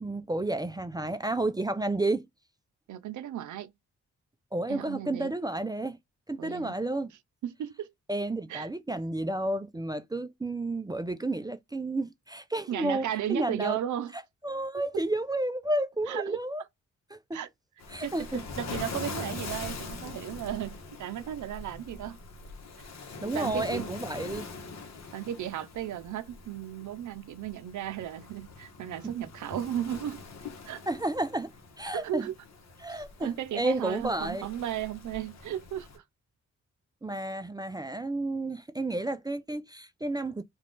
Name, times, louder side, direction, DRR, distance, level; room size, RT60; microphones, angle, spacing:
voice 1, 0.0-2.3 4.5-6.0 6.3-7.1 8.1-13.8 14.1-16.6 17.1-17.4 17.9-18.4 23.2-24.5 29.0-29.1 30.9-31.5 31.8-32.3 32.8-34.5 37.0-40.4, right 2 dB, 15° right, 0.3 m, -31 dB
voice 2, 2.9-3.7 4.7-5.3 6.4-6.8 7.4-7.9 8.5-8.7 12.7-14.1 16.1-16.4 17.3-17.5 18.0-22.2 23.3-23.9 25.1-30.2 30.7-30.8 31.9-32.3 32.9-36.0, right 11 dB, 70° right, 0.5 m, -35 dB
Waves surf, 17.8-36.0, left 4 dB, 60° left, 0.9 m, -43 dB
2.4 x 2.4 x 3.5 m
cardioid pair, 55°, 31 cm